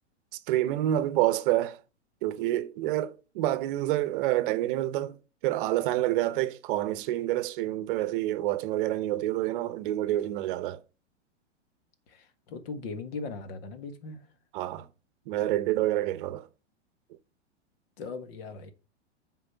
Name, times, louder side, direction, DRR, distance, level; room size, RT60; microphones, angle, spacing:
voice 1, 0.5-1.8 2.2-5.2 5.4-10.8 14.5-14.9 15.3-16.5, right 14 dB, 45° right, 0.8 m, -28 dB
voice 2, 12.1-14.2 18.0-18.7, left 4 dB, 55° left, 1.7 m, -39 dB
7.9 x 4.3 x 5.6 m
hypercardioid pair, 115°, 35 cm